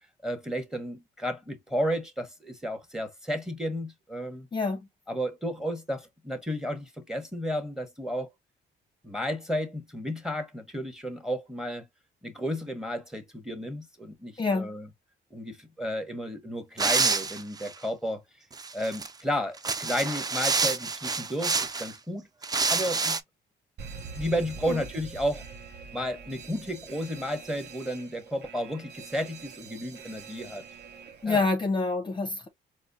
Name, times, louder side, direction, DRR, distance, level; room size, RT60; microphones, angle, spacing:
voice 1, 0.2-4.5 5.1-8.3 9.0-11.8 12.2-14.9 15.3-18.2 18.7-22.3 22.7-23.2 24.1-25.4 25.9-30.6 31.2-31.5, equal, 5° right, 0.9 m, -32 dB
voice 2, 4.5-4.8 14.4-14.7 24.7-24.8 31.2-32.5, left 3 dB, 25° left, 0.6 m, -27 dB
sound 1, 16.8-17.7 18.5-19.1 19.5-21.9 22.4-23.2, right 4 dB, 20° right, 0.4 m, -27 dB
Alarm, 23.8-31.5, right 5 dB, 55° right, 0.7 m, -44 dB
4.1 x 2.0 x 2.6 m
cardioid pair, 90°, 20 cm